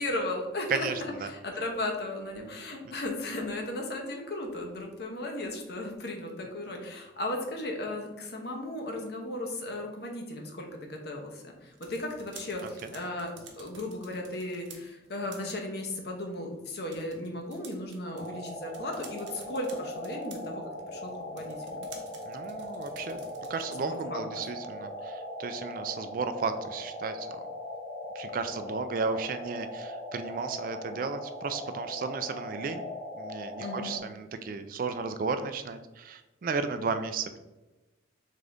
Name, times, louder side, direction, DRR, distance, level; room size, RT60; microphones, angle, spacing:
voice 1, 0.0-20.6 20.9-21.8 23.7-24.2 33.6-33.9, left 1 dB, 55° left, 2 dB, 0.8 m, -36 dB
voice 2, 0.7-1.3 22.3-27.4 28.1-32.9 33.2-37.4, right 4 dB, 45° right, 9 dB, 0.3 m, -34 dB
sound 1, 11.6-24.1, right 5 dB, 75° right, 0.8 m, -53 dB
sound 2, 18.1-34.0, left 1 dB, 35° left, 1.0 m, -40 dB
3.6 x 3.4 x 3.9 m, 1.1 s
head